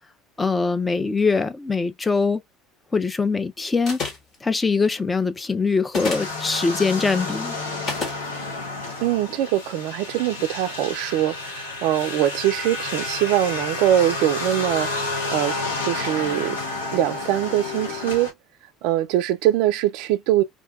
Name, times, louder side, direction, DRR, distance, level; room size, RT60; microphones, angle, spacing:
voice 1, 0.4-2.4 2.9-4.0 4.4-7.6, left 4 dB, 20° left, 0.4 m, -22 dB
sound 1, 3.9-4.4 5.9-6.4 7.9-8.2, left 4 dB, 45° left, 1.2 m, -29 dB
sound 2, 6.0-18.3, left 3 dB, 75° left, 0.8 m, -30 dB
voice 2, 9.0-15.6 15.8-16.6 16.9-18.3 18.8-20.4, right 12 dB, 60° right, 0.3 m, -22 dB
2.5 x 2.2 x 2.5 m
figure-of-eight pair, 65°, 0 cm